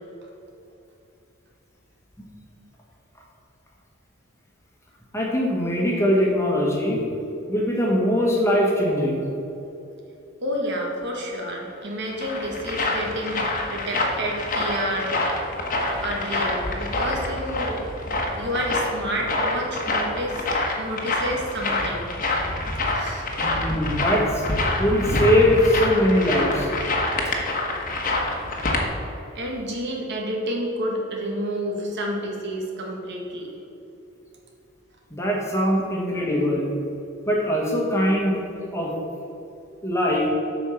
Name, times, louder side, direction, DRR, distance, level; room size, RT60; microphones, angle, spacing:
voice 1, 5.1-7.0 7.5-9.2 23.4-24.4 24.8-26.7 35.1-36.7 37.3-38.4 38.7-38.9 39.8-40.3, equal, 15° left, -2 dB, 1.5 m, -21 dB
voice 2, 10.4-15.1 16.0-17.8 18.4-20.4 20.8-22.1 22.9-23.2 29.3-33.5, equal, 55° right, 0 dB, 1.7 m, -29 dB
sound 1, 11.8-28.8, left 2 dB, 40° left, 1.3 m, -26 dB
8.2 x 5.5 x 7.3 m, 2.9 s
head